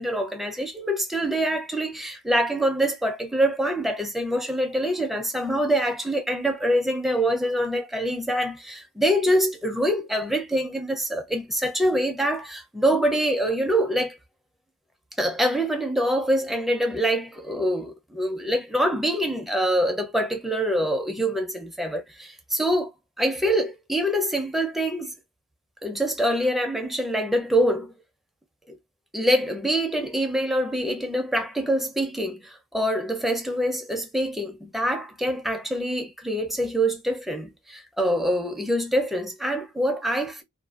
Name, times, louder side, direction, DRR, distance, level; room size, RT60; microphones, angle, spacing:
voice 1, 0.0-14.2 15.2-22.9 23.2-25.1 25.8-27.9 28.7-28.8 29.1-40.4, equal, ahead, 0.5 m, -25 dB
2.5 x 2.3 x 2.3 m
head